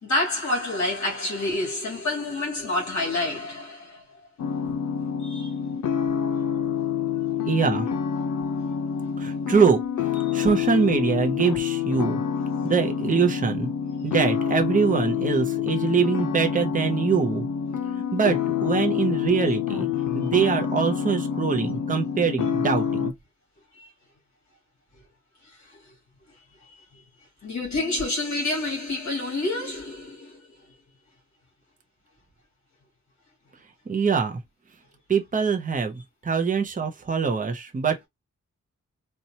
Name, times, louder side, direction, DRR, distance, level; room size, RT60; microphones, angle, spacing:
voice 1, 0.0-4.3 5.2-5.5 10.3-10.5 23.7-23.9 25.4-25.9 26.6-27.0 27.4-30.5, left 2 dB, 65° left, 2.2 m, -29 dB
sound 1, 4.4-23.1, left 8 dB, 85° left, 0.6 m, -27 dB
voice 2, 7.4-7.9 9.2-9.8 10.3-12.2 12.6-13.7 14.0-17.5 18.1-19.9 20.1-23.1 33.9-34.4 35.1-38.1, right 6 dB, 25° right, 0.6 m, -23 dB
4.2 x 2.2 x 2.8 m
wide cardioid pair, 175°, 30 cm